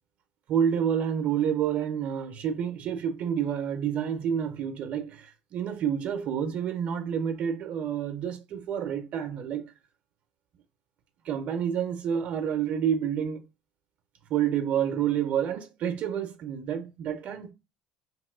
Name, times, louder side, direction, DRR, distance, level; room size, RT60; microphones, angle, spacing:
voice 1, 0.5-9.7 11.2-13.4 14.3-17.5, right 8 dB, 55° right, 0.5 m, -29 dB
2.9 x 2.9 x 2.3 m
hypercardioid pair, 65°, 3 cm